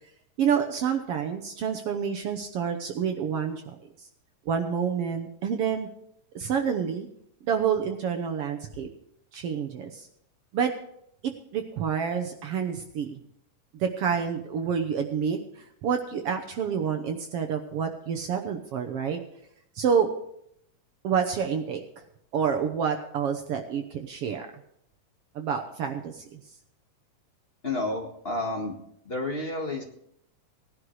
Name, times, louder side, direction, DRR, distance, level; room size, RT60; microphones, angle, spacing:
voice 1, 0.4-3.6 4.0-4.1 4.5-5.9 6.3-7.1 7.4-8.9 9.3-10.1 10.5-10.7 11.5-13.2 13.8-19.2 19.7-20.1 21.0-21.8 22.3-24.5 25.3-26.4, right 7 dB, 65° right, 4 dB, 1.6 m, -28 dB
voice 2, 27.6-28.7 29.0-29.8, left 2 dB, 30° left, 0 dB, 1.3 m, -30 dB
18.5 x 11.0 x 3.2 m, 0.73 s
omnidirectional pair, 3.4 m